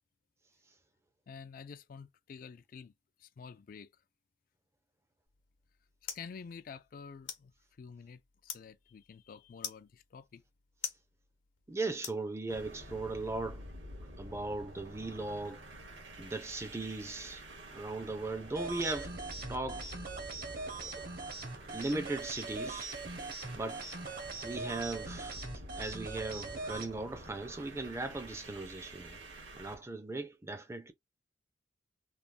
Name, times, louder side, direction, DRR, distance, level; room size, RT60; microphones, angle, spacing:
voice 1, 1.3-2.9 3.2-3.9 6.1-7.5 7.8-10.4, left 6 dB, 45° left, 0.3 m, -49 dB
sound 1, 5.3-12.8, left 8 dB, 85° left, 0.9 m, -48 dB
voice 2, 11.7-13.6 14.2-15.6 16.2-17.4 17.7-19.1 19.5-19.8 20.8-21.1 21.7-22.9 23.5-23.8 24.4-29.2 29.5-30.9, right 2 dB, 15° right, 0.4 m, -38 dB
sound 2, 12.5-29.8, right 1 dB, 75° right, 1.3 m, -49 dB
sound 3, 18.5-26.9, right 3 dB, 50° right, 0.8 m, -42 dB
3.3 x 2.1 x 2.5 m
head